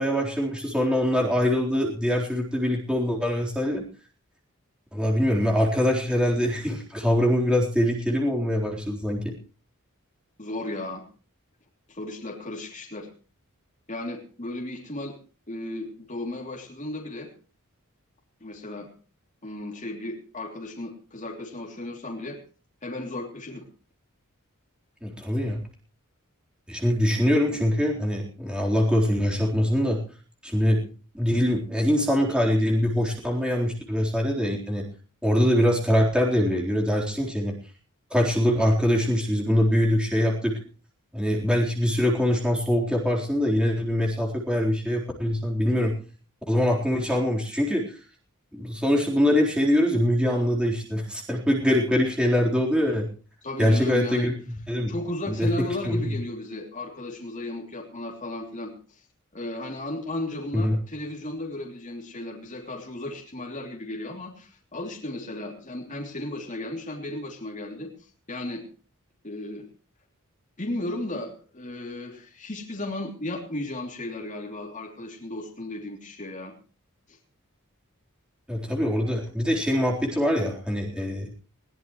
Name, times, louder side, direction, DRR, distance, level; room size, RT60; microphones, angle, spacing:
voice 1, 0.0-3.8 4.9-9.3 25.0-25.6 26.7-30.0 30.4-30.9 31.1-34.9 35.2-37.5 38.1-40.6 41.1-45.9 46.5-47.9 48.5-53.1 53.6-54.4 54.7-54.9 55.3-55.5 55.8-56.1 60.5-60.8 78.5-81.3, equal, 5° right, -1 dB, 3.9 m, -23 dB
voice 2, 10.4-11.0 11.9-13.1 13.9-15.1 15.5-17.3 18.4-18.9 19.4-22.4 22.8-23.6 53.4-54.3 54.9-59.0 59.3-68.6 69.2-69.6 70.6-76.5 77.1-77.2, left 1 dB, 35° left, 0 dB, 3.1 m, -35 dB
21.5 x 17.0 x 3.2 m, 0.38 s
head